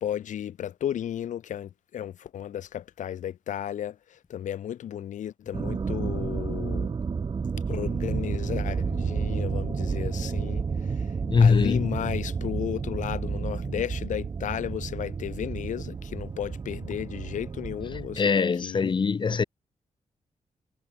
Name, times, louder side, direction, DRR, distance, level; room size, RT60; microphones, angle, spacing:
voice 1, 0.0-6.9 7.7-11.1 11.4-18.9, left 10 dB, 90° left, 2.0 m, -34 dB
sound 1, 5.5-18.2, right 5 dB, 35° right, 0.8 m, -31 dB
voice 2, 11.2-11.9 18.2-19.4, left 5 dB, 40° left, 1.3 m, -22 dB
cardioid pair, 100°, 13 cm